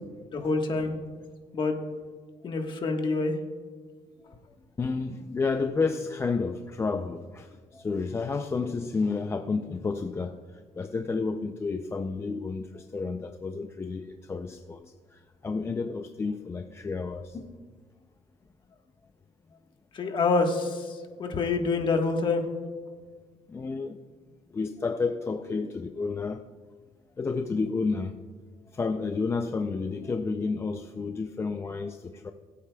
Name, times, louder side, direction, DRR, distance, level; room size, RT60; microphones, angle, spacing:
voice 1, 0.3-1.0 1.5-1.8 2.4-3.4 19.9-22.4, left 3 dB, 40° left, 1.3 m, -26 dB
voice 2, 4.8-17.4 23.5-24.0 24.5-26.4 27.2-28.2 28.7-32.3, left 4 dB, 20° left, 0.4 m, -31 dB
21.0 x 8.4 x 2.3 m
cardioid pair, 125°, 12 cm